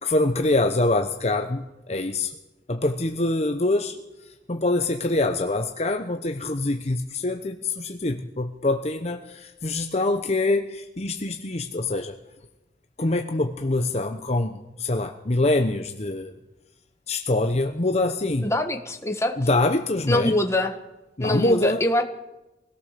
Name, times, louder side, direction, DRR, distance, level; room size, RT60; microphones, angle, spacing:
voice 1, 0.0-2.4 2.7-4.0 4.2-12.2 13.0-16.3 17.1-18.5 19.4-20.4 21.2-21.8, left 2 dB, 35° left, 5 dB, 0.9 m, -24 dB
voice 2, 18.4-19.4 20.1-20.8 21.2-22.0, left 1 dB, 15° left, 5 dB, 1.5 m, -24 dB
23.5 x 17.5 x 6.8 m, 1.0 s
head